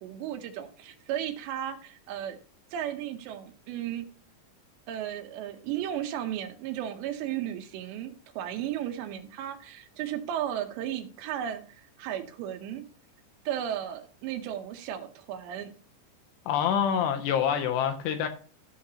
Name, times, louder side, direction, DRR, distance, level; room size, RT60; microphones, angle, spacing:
voice 1, 0.0-2.4 2.7-4.1 4.9-12.9 13.5-15.7, right 10 dB, 80° right, 2.9 m, -35 dB
voice 2, 16.5-18.3, left 8 dB, 80° left, 2.6 m, -26 dB
14.0 x 6.3 x 2.8 m
omnidirectional pair, 5.4 m